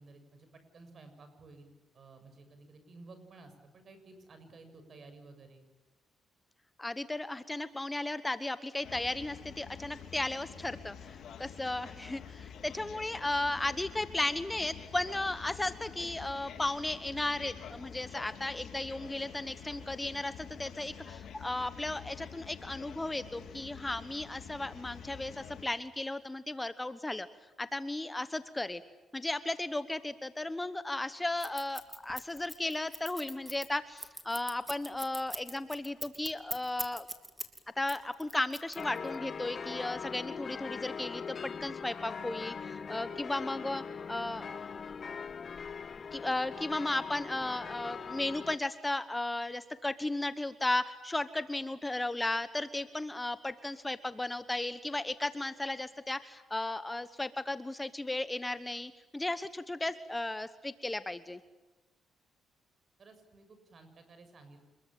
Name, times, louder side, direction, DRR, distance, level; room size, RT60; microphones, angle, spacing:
voice 1, 0.0-5.7 11.3-11.4 63.0-64.6, right 3 dB, 45° right, 8 dB, 7.0 m, -54 dB
voice 2, 6.8-27.3 27.6-28.8 29.1-37.1 37.8-44.4 46.1-61.4, left 2 dB, 15° left, 12 dB, 1.1 m, -35 dB
sound 1, 8.8-25.6, left 8 dB, 70° left, 3.3 m, -48 dB
Scissors, 31.4-37.6 37.9-39.1, right 1 dB, 10° right, 3.1 m, -41 dB
sound 2, 38.8-48.6, left 6 dB, 45° left, 0.9 m, -41 dB
27.0 x 22.0 x 9.1 m, 1.1 s
cardioid pair, 90°, 0 cm